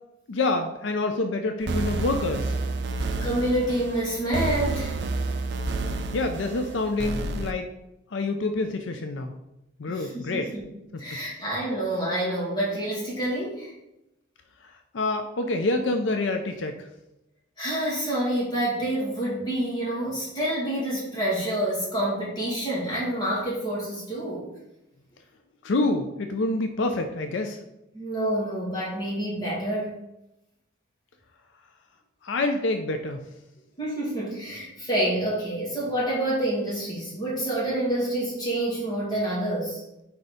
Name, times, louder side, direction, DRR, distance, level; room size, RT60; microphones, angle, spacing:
voice 1, 0.3-2.6 6.1-7.7 8.1-9.3 9.8-10.5 10.9-11.2 14.6-16.9 25.6-27.6 32.2-33.2, left 2 dB, 75° left, 5 dB, 0.5 m, -27 dB
sound 1, 1.6-7.5, right 3 dB, 60° right, 0.4 m, -30 dB
voice 2, 3.2-5.0 9.9-10.6 11.0-13.7 17.6-24.5 27.9-29.9 33.8-39.8, right 1 dB, 20° left, -6 dB, 2.3 m, -28 dB
4.5 x 4.2 x 5.0 m, 0.90 s
head